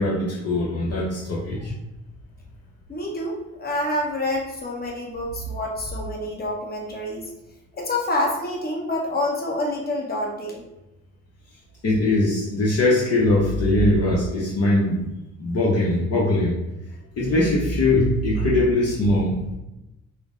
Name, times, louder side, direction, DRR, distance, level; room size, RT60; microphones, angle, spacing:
voice 1, 0.0-1.7 11.8-15.0 15.4-16.6 17.2-19.4, left 1 dB, 55° left, -4 dB, 0.9 m, -21 dB
voice 2, 2.9-7.3 7.7-10.6, left 1 dB, 30° left, -1 dB, 1.1 m, -27 dB
5.0 x 2.1 x 3.7 m, 0.93 s
cardioid pair, 90°, 30 cm